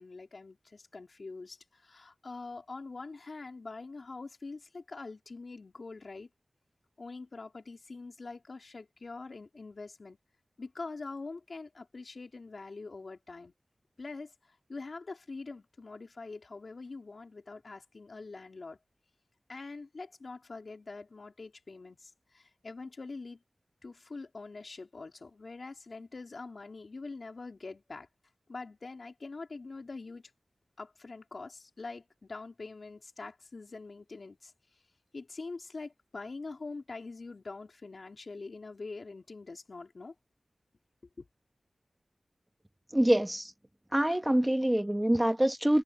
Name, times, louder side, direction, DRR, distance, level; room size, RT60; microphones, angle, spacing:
voice 1, 0.0-6.3 7.0-10.2 10.6-13.5 14.0-14.3 14.7-18.8 19.5-23.4 23.8-28.1 28.5-30.2 30.8-34.5 35.1-40.1 41.2-41.3, left 3 dB, 65° left, 3.9 m, -44 dB
voice 2, 42.9-43.5 43.9-45.8, right 1 dB, 15° right, 1.6 m, -25 dB
wide cardioid pair, 80°, 0 cm